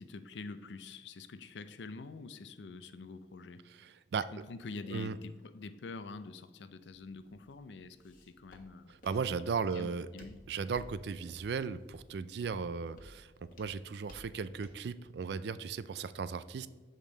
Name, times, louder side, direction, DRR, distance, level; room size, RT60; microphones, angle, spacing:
voice 1, 0.0-3.6 4.3-9.0 9.7-10.4, left 3 dB, 90° left, 12 dB, 0.5 m, -46 dB
voice 2, 3.8-4.3 4.9-5.2 9.0-10.1 10.5-16.7, right 5 dB, 70° right, 15 dB, 0.4 m, -36 dB
Walk footsteps, 6.8-14.9, equal, 50° left, 1.2 m, -58 dB
7.3 x 5.1 x 3.9 m, 1.4 s
head